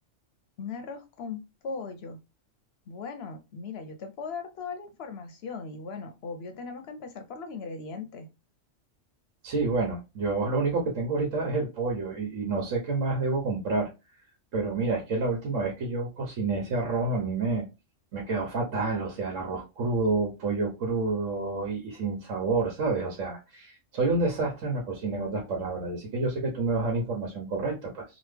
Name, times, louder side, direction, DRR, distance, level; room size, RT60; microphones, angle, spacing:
voice 1, 0.6-2.2 2.9-8.3, left 4 dB, 65° left, 0.7 m, -38 dB
voice 2, 9.4-13.9 14.5-17.6 18.1-28.0, right 3 dB, 80° right, 1.2 m, -29 dB
3.0 x 2.2 x 3.3 m
omnidirectional pair, 1.3 m